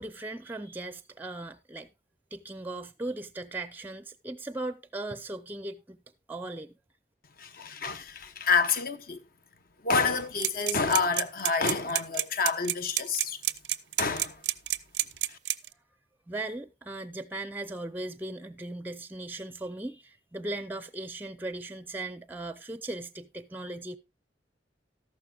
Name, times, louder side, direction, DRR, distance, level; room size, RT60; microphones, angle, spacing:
voice 1, 0.0-1.9 2.3-6.0 6.3-6.7 16.3-24.0, right 2 dB, 10° right, 0.5 m, -38 dB
voice 2, 7.4-9.2 9.8-13.4 14.0-14.4 15.3-15.4, left 5 dB, 50° left, 1.0 m, -28 dB
sound 1, 10.4-15.7, right 14 dB, 80° right, 0.6 m, -28 dB
13.5 x 12.0 x 2.3 m
head